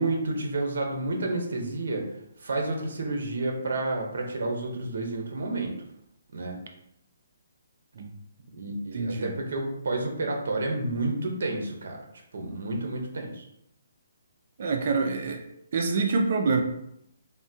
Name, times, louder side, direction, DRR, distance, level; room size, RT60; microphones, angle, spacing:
voice 1, 0.0-2.1 2.4-5.7 6.3-6.6 8.5-12.0 12.3-13.5, right 2 dB, 65° right, 2 dB, 0.7 m, -30 dB
voice 2, 8.9-9.3 14.6-15.5 15.7-16.6, right 4 dB, 40° right, 3 dB, 0.3 m, -26 dB
3.5 x 2.1 x 2.7 m, 0.78 s
hypercardioid pair, 175°, 0 cm